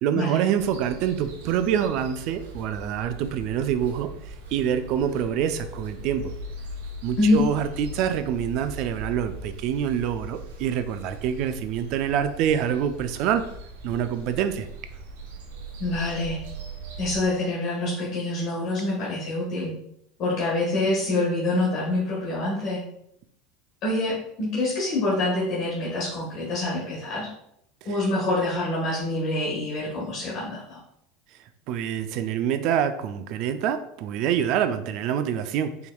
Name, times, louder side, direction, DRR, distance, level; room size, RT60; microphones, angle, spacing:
voice 1, 0.0-4.1 4.5-6.3 7.0-13.4 13.8-14.7 31.7-35.9, right 9 dB, 60° right, 10 dB, 0.4 m, -26 dB
sound 1, 0.5-17.3, right 2 dB, 85° right, 0.8 m, -40 dB
voice 2, 15.8-16.4 17.0-19.7 20.2-22.8 23.8-27.3 27.8-30.8, left 2 dB, 50° left, -7 dB, 1.4 m, -26 dB
4.3 x 3.5 x 2.3 m, 0.74 s
supercardioid pair, 105°, 0 cm